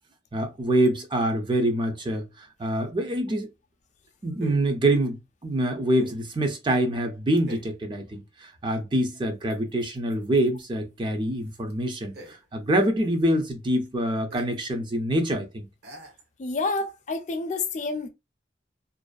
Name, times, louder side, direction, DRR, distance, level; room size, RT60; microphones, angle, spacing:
voice 1, 0.3-3.5 4.2-15.7, right 1 dB, 25° right, 0.4 m, -25 dB
sound 1, 4.4-4.8 6.0-6.3 7.4-7.8 9.5-10.7 11.1-11.2 11.4-12.7 13.0-13.3 13.9-14.0 14.3-14.7 15.0-15.1 15.8-16.3, right 1 dB, 60° right, 0.7 m, -44 dB
voice 2, 16.4-18.1, left 3 dB, 40° left, 0.4 m, -29 dB
2.5 x 2.2 x 2.3 m
head